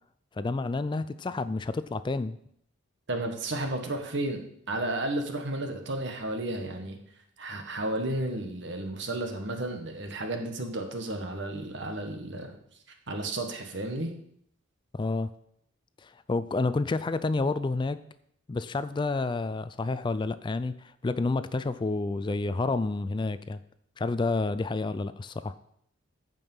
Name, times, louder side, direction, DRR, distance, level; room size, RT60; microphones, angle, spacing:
voice 1, 0.4-2.4 14.9-15.3 16.0-18.0 18.5-23.6 24.0-25.5, left 3 dB, 25° left, 14 dB, 0.3 m, -29 dB
voice 2, 3.1-4.4 4.7-7.0 7.4-12.6 13.1-14.1, right 2 dB, 60° right, 5 dB, 1.5 m, -32 dB
14.5 x 5.4 x 5.5 m, 0.70 s
head